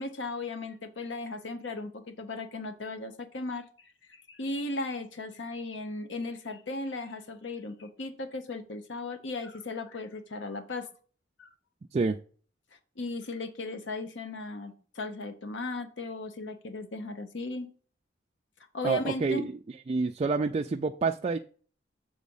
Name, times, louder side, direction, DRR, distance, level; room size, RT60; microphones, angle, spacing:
voice 1, 0.0-10.9 11.4-11.5 13.0-17.7 18.7-19.5, left 2 dB, 80° left, 8 dB, 0.9 m, -36 dB
voice 2, 18.8-19.5 19.9-21.4, right 4 dB, 35° right, 4 dB, 0.3 m, -28 dB
7.2 x 4.1 x 5.4 m, 0.42 s
head